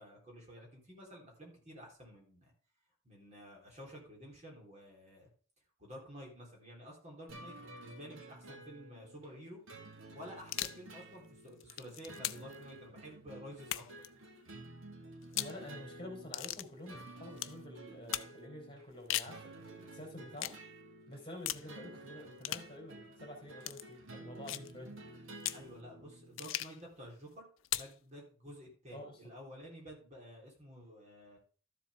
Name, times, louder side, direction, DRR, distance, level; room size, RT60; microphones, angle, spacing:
voice 1, 0.0-2.5 3.0-5.3 5.8-9.6 10.1-13.8 25.5-27.5 27.7-31.4, equal, 35° right, -1 dB, 3.7 m, -51 dB
sound 1, 7.3-26.5, right 2 dB, 80° right, 1.8 m, -52 dB
sound 2, 10.4-10.8 11.5-12.6 13.6-14.1 15.2-15.6 16.3-16.7 17.4-17.6 18.1-18.3 18.9-19.4 20.4-20.6 21.5-21.7 22.4-22.7 23.6-23.8 24.5-24.7 25.4-25.7 26.4-26.8 27.6-28.0, left 14 dB, 70° left, 0.5 m, -38 dB
voice 2, 15.3-20.6 21.1-25.1 28.9-29.2, left 1 dB, 25° left, 0 dB, 3.6 m, -49 dB
13.0 x 7.5 x 3.6 m, 0.38 s
head